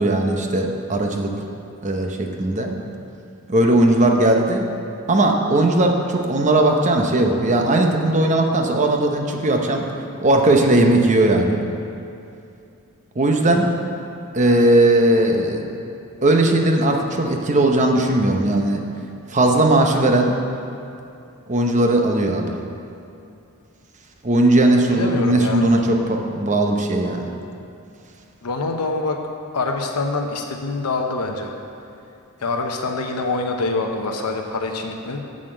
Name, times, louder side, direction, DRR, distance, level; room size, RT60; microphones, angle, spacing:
voice 1, 0.0-1.4 1.8-2.7 3.5-4.7 5.1-9.8 10.2-11.6 13.2-13.7 14.3-15.7 16.2-18.8 19.3-20.4 21.5-22.6 24.2-27.3, right 1 dB, 35° right, 3 dB, 0.8 m, -18 dB
voice 2, 24.9-25.7 28.4-29.2 29.5-31.5 32.4-35.2, left 3 dB, 90° left, 3 dB, 0.8 m, -25 dB
7.3 x 6.5 x 7.8 m, 2.6 s
head